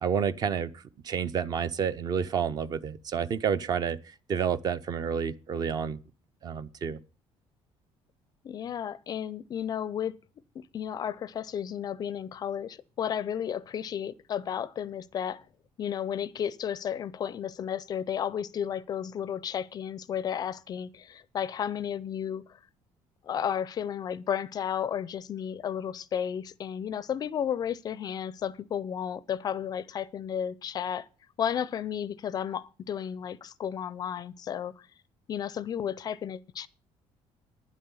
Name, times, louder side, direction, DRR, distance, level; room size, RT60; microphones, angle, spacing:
voice 1, 0.0-6.0 6.4-7.0, right 7 dB, 35° right, 0.6 m, -30 dB
voice 2, 8.4-10.2 10.5-15.4 15.8-22.6 23.2-31.1 31.4-34.9 35.3-36.7, left 9 dB, 35° left, 0.5 m, -33 dB
10.0 x 7.6 x 7.1 m
cardioid pair, 170°, 11 cm